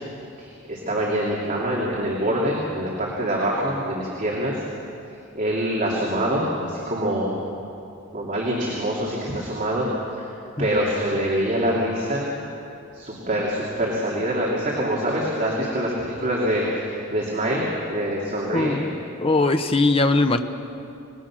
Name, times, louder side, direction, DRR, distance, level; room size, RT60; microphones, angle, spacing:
voice 1, 0.4-4.5 5.3-7.4 8.1-9.8 10.2-10.3 10.6-12.3 12.9-18.8, equal, 40° right, -5 dB, 3.1 m, -25 dB
voice 2, 18.5-20.4, left 2 dB, 25° left, 7 dB, 1.0 m, -21 dB
28.5 x 20.0 x 6.3 m, 2.7 s
head